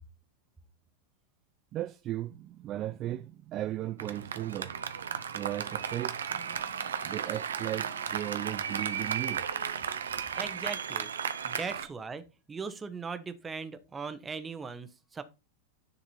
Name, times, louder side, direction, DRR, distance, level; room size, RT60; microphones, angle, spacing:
voice 1, 1.7-4.8 5.3-9.4 10.6-10.7 11.8-11.9, right 13 dB, 35° right, 0.3 m, -37 dB
Applause, 4.0-11.8, right 7 dB, 65° right, 0.8 m, -34 dB
voice 2, 10.4-11.1 11.4-12.2 12.5-15.2, right 5 dB, 15° right, 1.0 m, -39 dB
10.0 x 4.2 x 4.3 m
figure-of-eight pair, 90°, 0 cm